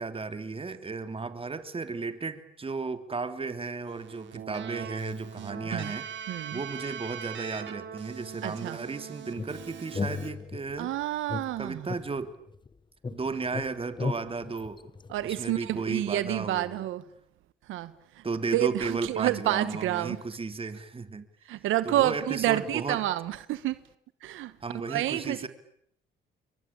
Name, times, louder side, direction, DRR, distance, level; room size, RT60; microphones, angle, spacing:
voice 1, 0.0-10.9 11.6-12.4 13.1-14.9 15.2-16.8 18.2-21.3 21.8-23.0 24.6-25.5, right 4 dB, 30° right, 3.1 m, -34 dB
Keyboard (musical), 3.9-10.3, right 8 dB, 65° right, 3.7 m, -41 dB
voice 2, 6.3-6.6 8.4-8.8 10.8-11.9 15.1-17.0 17.7-18.2 18.5-20.2 21.4-23.8 24.2-24.5 24.9-25.5, right 14 dB, 85° right, 1.1 m, -29 dB
sound 1, 9.4-10.8 11.3-12.7 13.0-15.6, left 4 dB, 25° left, 1.1 m, -36 dB
29.0 x 23.5 x 8.7 m
cardioid pair, 90°, 20 cm